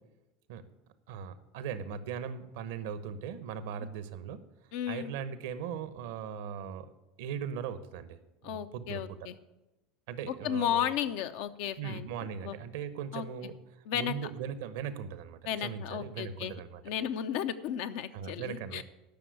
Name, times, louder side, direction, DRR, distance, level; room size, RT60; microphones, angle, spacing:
voice 1, 1.1-4.4 4.9-6.9 7.2-9.2 10.1-10.8 11.8-13.5 13.9-16.8 18.1-18.8, right 7 dB, 70° right, 13 dB, 0.9 m, -39 dB
voice 2, 4.7-5.1 8.4-9.4 10.3-12.1 12.4-12.6 13.1-13.2 13.9-14.1 15.5-16.5 16.8-18.8, left 10 dB, 65° left, 9 dB, 0.7 m, -34 dB
12.0 x 6.1 x 8.2 m, 0.99 s
hypercardioid pair, 80°, 0 cm